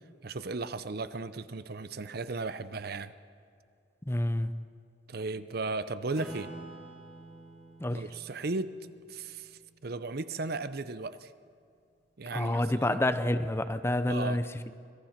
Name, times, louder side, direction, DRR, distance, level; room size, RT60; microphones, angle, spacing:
voice 1, 0.2-3.1 5.1-6.5 7.9-8.8 9.1-11.3 12.2-13.0 14.1-14.4, right 3 dB, 55° right, 13 dB, 0.7 m, -36 dB
voice 2, 4.1-4.5 7.8-8.0 12.3-14.4, left 1 dB, 15° left, 11 dB, 0.6 m, -28 dB
Acoustic guitar / Strum, 6.1-11.1, right 1 dB, ahead, 4.1 m, -50 dB
25.0 x 18.5 x 5.9 m, 2.4 s
head